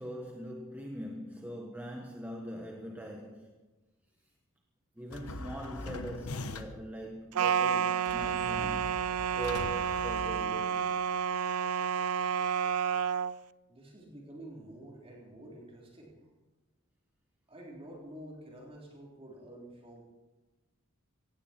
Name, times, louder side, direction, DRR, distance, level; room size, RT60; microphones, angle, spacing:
voice 1, 0.0-3.6 5.0-9.0 9.4-11.0, right 1 dB, 10° right, 1.3 m, -42 dB
sound 1, 5.1-6.9 8.1-10.9, left 2 dB, 85° left, 1.2 m, -42 dB
sound 2, 7.3-13.3, right 7 dB, 80° right, 0.4 m, -30 dB
voice 2, 13.7-16.3 17.5-20.0, right 1 dB, 25° right, 3.5 m, -49 dB
17.5 x 17.0 x 4.4 m
head